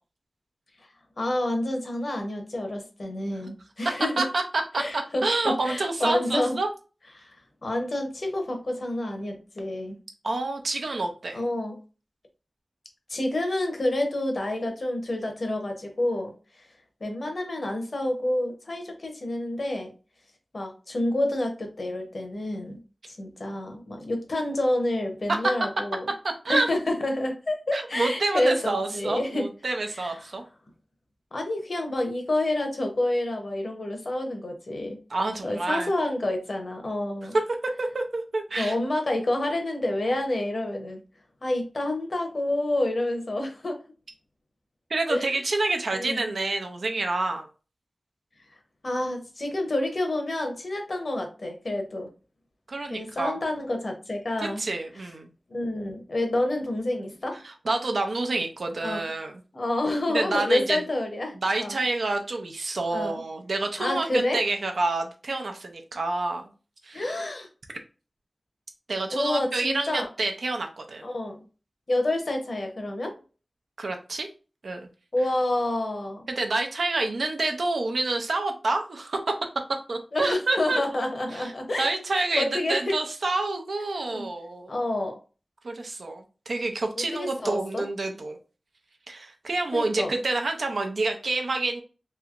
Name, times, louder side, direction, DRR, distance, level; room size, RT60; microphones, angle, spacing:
voice 1, 1.2-4.3 4.8-6.6 7.2-7.3 7.6-10.0 11.3-11.8 13.1-16.3 17.0-19.9 20.5-22.8 23.1-26.1 26.5-29.5 29.9-30.2 31.3-35.0 35.4-37.4 38.5-41.0 41.4-43.8 45.1-45.4 45.9-46.2 48.8-52.1 52.9-54.6 55.5-57.4 58.8-59.1 59.5-61.8 62.9-63.2 63.8-64.4 66.9-67.5 69.1-70.1 71.0-71.4 71.9-73.2 75.1-76.3 80.1-81.9 82.1-83.0 84.1-84.3 84.7-85.2 87.0-87.8 89.7-90.1, left 1 dB, 60° left, 4 dB, 0.9 m, -28 dB
voice 2, 4.2-6.7 10.2-11.4 25.3-25.5 26.4-26.7 27.7-30.4 35.1-35.9 37.3-37.4 37.8-38.7 44.9-47.5 52.7-53.4 54.4-55.3 57.4-59.3 60.1-60.8 61.4-66.5 66.8-67.1 68.9-71.1 73.8-74.3 74.6-74.8 76.3-79.3 79.9-80.8 81.3-81.5 81.8-84.7 85.6-88.4 89.1-91.8, right 2 dB, 80° right, 4 dB, 0.6 m, -28 dB
3.2 x 2.8 x 2.4 m, 0.34 s
wide cardioid pair, 85°, 0 cm